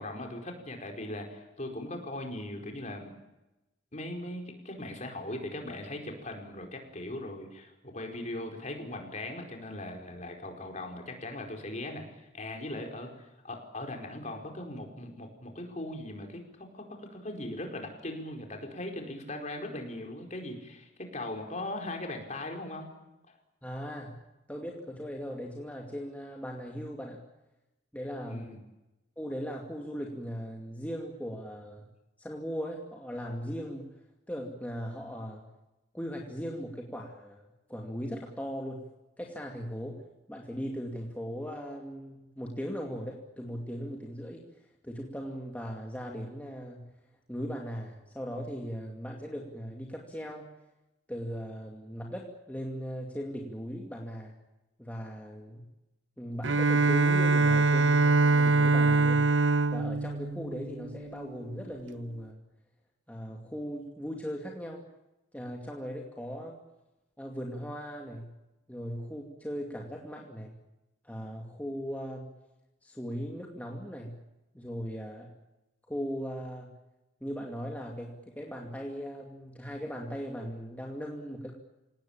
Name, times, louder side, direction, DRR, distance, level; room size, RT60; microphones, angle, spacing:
voice 1, 0.0-3.1 3.9-22.9 23.3-23.4 28.3-28.6, left 1 dB, 35° left, 3 dB, 4.7 m, -39 dB
voice 2, 23.6-24.2 24.5-27.2 27.9-28.5 29.2-31.9 32.2-34.0 34.3-35.5 35.9-37.4 37.7-38.9 39.2-44.4 44.8-46.9 47.3-50.5 51.1-54.4 54.8-55.7 56.2-59.4 59.7-62.4 63.1-64.8 65.3-66.6 67.2-68.3 68.7-70.6 71.0-72.3 72.8-74.2 74.5-75.3 75.9-76.7 77.2-81.6, equal, 10° left, 0 dB, 2.4 m, -38 dB
Bowed string instrument, 56.4-61.2, right 3 dB, 70° right, 0.9 m, -24 dB
27.0 x 18.5 x 8.9 m, 0.98 s
head